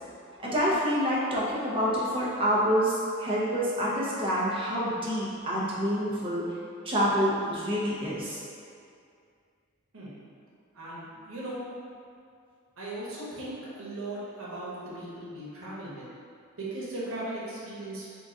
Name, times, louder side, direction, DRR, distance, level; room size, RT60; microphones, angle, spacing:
voice 1, 0.4-6.4 6.8-8.4, equal, 25° right, -7 dB, 0.8 m, -27 dB
voice 2, 10.7-11.6 12.8-16.1 16.6-18.1, right 1 dB, 85° right, -7 dB, 1.0 m, -38 dB
3.8 x 2.4 x 3.9 m, 2.4 s
head